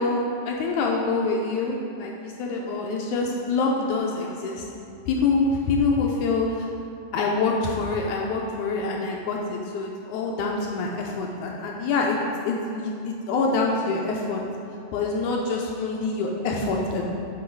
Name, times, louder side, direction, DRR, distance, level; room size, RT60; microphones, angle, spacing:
voice 1, 0.0-4.7 5.1-6.7 7.1-12.2 12.5-14.4 14.9-17.0, left 3 dB, 80° left, -1 dB, 1.8 m, -26 dB
8.4 x 5.5 x 4.6 m, 2.6 s
omnidirectional pair, 3.9 m